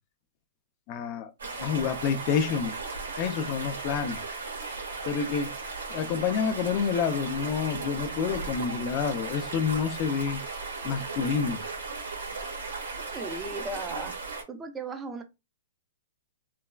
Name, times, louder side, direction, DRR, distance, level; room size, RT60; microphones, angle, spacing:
voice 1, 0.9-1.3 1.6-2.7 3.2-4.2 5.1-5.5 5.9-10.4 10.8-11.6, left 6 dB, 40° left, 0.4 m, -28 dB
sound 1, 1.4-14.4, right 4 dB, 85° right, 1.3 m, -36 dB
voice 2, 13.0-14.2 14.5-15.2, right 3 dB, 15° right, 0.5 m, -37 dB
3.2 x 2.2 x 2.2 m
hypercardioid pair, 140°, 0 cm